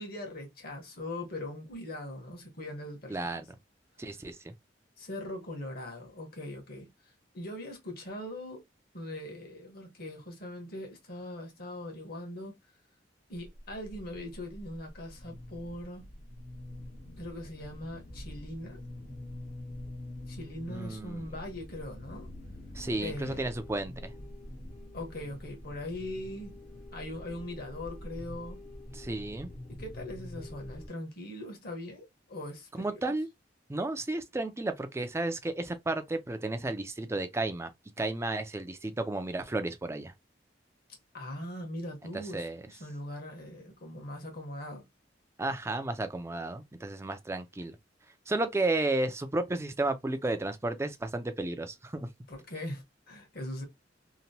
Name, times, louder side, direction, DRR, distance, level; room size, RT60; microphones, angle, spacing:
voice 1, 0.0-3.4 5.0-6.9 7.3-8.6 8.9-12.6 13.3-16.0 17.2-18.8 20.3-22.3 23.0-23.5 24.9-26.5 26.9-28.6 29.7-33.1 41.1-44.8 52.3-53.6, left 1 dB, 55° left, 1.1 m, -41 dB
voice 2, 3.1-3.4 4.0-4.5 20.7-21.2 22.7-24.1 28.9-29.5 32.8-33.3 33.7-37.7 38.0-40.1 42.1-42.6 45.4-47.8 48.3-52.1, right 2 dB, 15° right, 0.4 m, -33 dB
sound 1, 13.3-30.9, left 1 dB, 40° left, 0.6 m, -45 dB
2.9 x 2.2 x 2.7 m
head